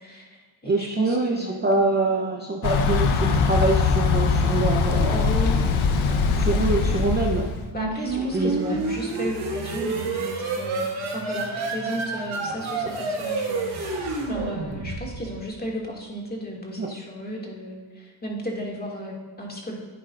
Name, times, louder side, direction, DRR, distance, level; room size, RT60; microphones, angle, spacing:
voice 1, 0.0-1.8 5.1-5.6 7.7-19.7, equal, 20° left, -2 dB, 2.2 m, -34 dB
voice 2, 0.6-5.3 6.0-7.5 8.3-8.9 16.8-16.9, right 2 dB, 20° right, 0 dB, 0.7 m, -25 dB
Thunder / Bicycle, 2.6-7.7, left 5 dB, 90° left, 0.9 m, -22 dB
sound 1, 7.7-15.4, right 3 dB, 80° right, 1.8 m, -29 dB
11.0 x 8.9 x 2.5 m, 1.5 s
cardioid pair, 110°, 47 cm